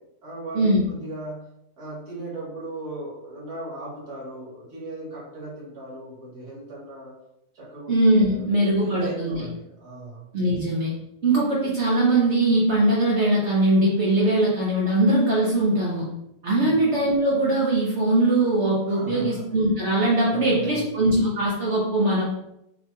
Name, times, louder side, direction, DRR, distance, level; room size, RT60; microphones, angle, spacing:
voice 1, 0.2-1.5 1.8-7.2 7.5-8.5 8.8-10.3 16.6-16.8 18.9-19.5 20.3-20.9, right 2 dB, 75° right, -6 dB, 2.1 m, -37 dB
voice 2, 7.9-9.4 10.3-10.9 11.2-16.0 16.4-22.2, right 1 dB, 55° right, -5 dB, 1.0 m, -21 dB
6.5 x 2.9 x 2.3 m, 0.80 s
omnidirectional pair, 1.6 m